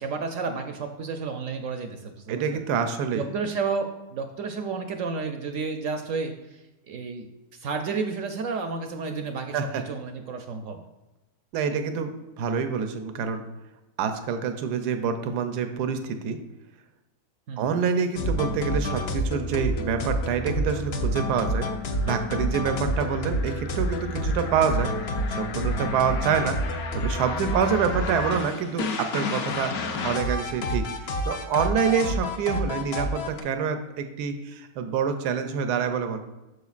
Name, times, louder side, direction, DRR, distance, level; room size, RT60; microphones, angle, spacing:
voice 1, 0.0-2.6 3.1-7.3 7.6-10.8 17.5-17.8 23.1-23.2, right 4 dB, 70° right, 5 dB, 0.8 m, -31 dB
voice 2, 2.3-3.3 9.5-9.8 11.5-13.4 14.0-16.4 17.6-21.7 22.0-24.9 25.4-26.6 26.9-29.7 30.0-36.2, right 6 dB, 85° right, 8 dB, 1.2 m, -27 dB
sound 1, 18.2-33.4, equal, 60° left, 0.7 m, -28 dB
8.1 x 6.4 x 2.4 m, 1.0 s
omnidirectional pair, 1.7 m